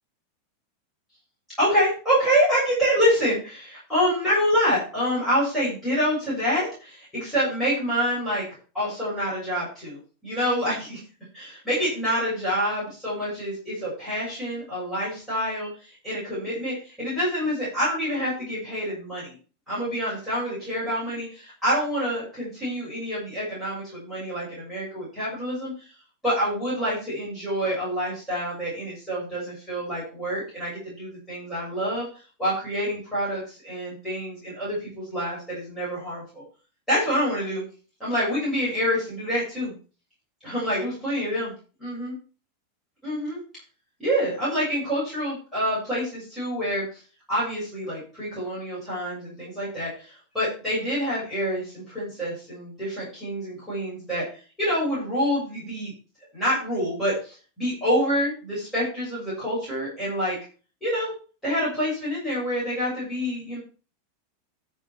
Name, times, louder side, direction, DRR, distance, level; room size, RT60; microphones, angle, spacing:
voice 1, 1.6-8.5 8.7-11.0 11.3-19.4 19.7-25.9 26.2-32.1 32.4-36.4 36.9-37.7 38.0-39.7 40.4-41.5 41.8-42.1 43.0-43.4 44.0-47.0 47.3-54.3 54.6-55.9 56.3-60.4 60.8-61.1 61.4-63.6, equal, 5° left, -9 dB, 7.0 m, -27 dB
11.0 x 7.4 x 4.5 m, 0.36 s
supercardioid pair, 175°, 0 cm